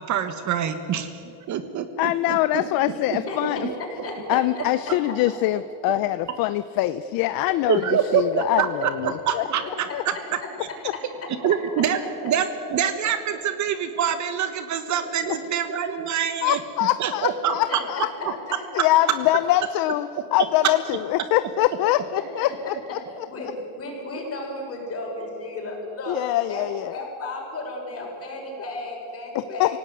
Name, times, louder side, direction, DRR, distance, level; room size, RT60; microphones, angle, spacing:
voice 1, 0.1-1.1 1.5-3.7 7.7-9.6 11.4-12.4 12.7-16.6 17.0-17.6, right 8 dB, 40° right, 10 dB, 1.4 m, -25 dB
voice 2, 2.0-3.6 4.3-9.4 9.9-10.0 16.4-18.4 18.7-23.0 26.1-27.0 29.3-29.8, left 15 dB, 50° left, 13 dB, 0.7 m, -24 dB
voice 3, 3.2-4.7 9.4-9.7 10.1-11.3 12.2-12.3 14.9-15.0 17.7-17.8 18.2-18.8 22.2-22.5 23.3-26.2 26.5-26.6 26.9-29.7, left 2 dB, 30° left, 0 dB, 6.5 m, -34 dB
27.0 x 17.5 x 9.4 m, 2.8 s
cardioid pair, 155°, 46 cm